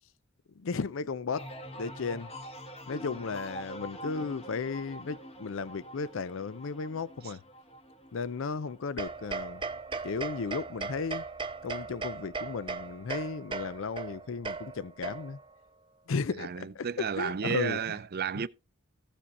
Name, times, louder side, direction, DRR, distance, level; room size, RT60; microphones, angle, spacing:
voice 1, 0.6-1.5 1.8-2.3 2.9-7.4 8.1-9.6 10.0-11.2 11.6-15.4 16.1-18.0 18.4-18.5, left 5 dB, 65° left, 0.5 m, -35 dB
sound 1, 1.3-10.9 11.3-11.8, equal, 30° left, 1.4 m, -46 dB
sound 2, 9.0-15.5, right 4 dB, 25° right, 0.8 m, -38 dB
voice 2, 16.4-18.5, right 7 dB, 50° right, 0.5 m, -32 dB
15.0 x 7.2 x 4.1 m
head